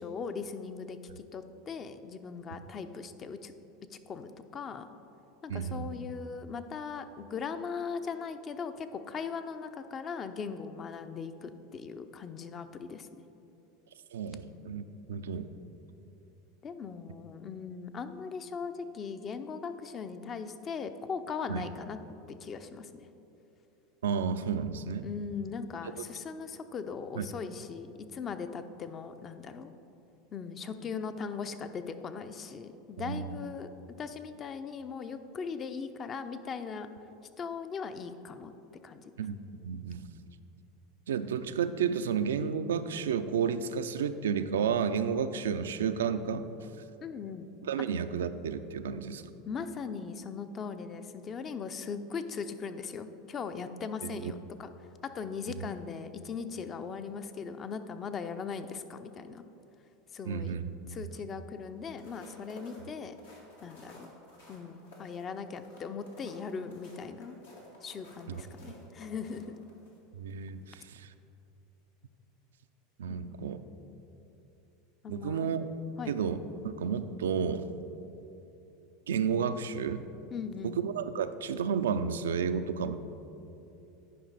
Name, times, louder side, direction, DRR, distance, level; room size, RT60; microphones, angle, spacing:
voice 1, 0.0-3.5 3.9-4.9 5.4-13.2 16.6-22.0 22.4-22.9 25.0-29.7 30.3-33.7 34.0-36.9 37.4-38.5 38.8-39.1 47.0-47.5 49.4-54.7 55.0-59.4 60.1-60.6 60.9-63.1 63.6-64.1 64.5-67.4 67.8-69.6 73.1-73.5 75.0-75.5 76.0-76.2 80.3-80.8, left 5 dB, 35° left, 10 dB, 0.5 m, -39 dB
voice 2, 5.5-5.8 14.1-15.5 21.5-21.6 24.0-25.0 27.2-27.3 33.0-33.4 39.2-40.0 41.1-46.5 47.6-49.2 54.2-54.3 55.6-55.7 60.3-61.0 68.3-68.4 70.1-71.1 73.0-73.6 75.1-75.7 76.1-77.7 79.1-80.0 80.6-83.0, right 7 dB, 80° right, 10 dB, 0.3 m, -32 dB
sound 1, 61.8-70.0 70.4-70.6, left 1 dB, 85° left, 1.7 m, -54 dB
10.0 x 5.1 x 4.1 m, 2.8 s
hypercardioid pair, 90°, 0 cm